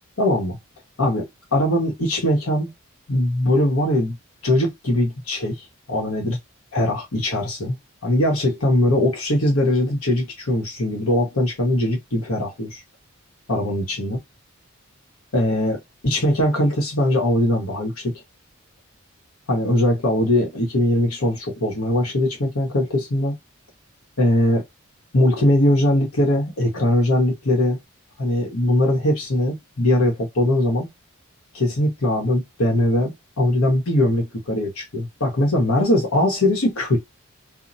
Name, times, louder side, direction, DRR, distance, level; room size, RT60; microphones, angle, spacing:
voice 1, 0.2-0.6 1.0-2.7 3.1-4.1 4.4-6.4 6.7-7.8 8.0-12.8 13.5-14.2 15.3-18.1 19.5-23.3 24.2-24.6 25.1-27.8 28.2-30.9 31.5-37.0, left 1 dB, 90° left, 1.2 m, -21 dB
2.8 x 2.1 x 2.6 m
head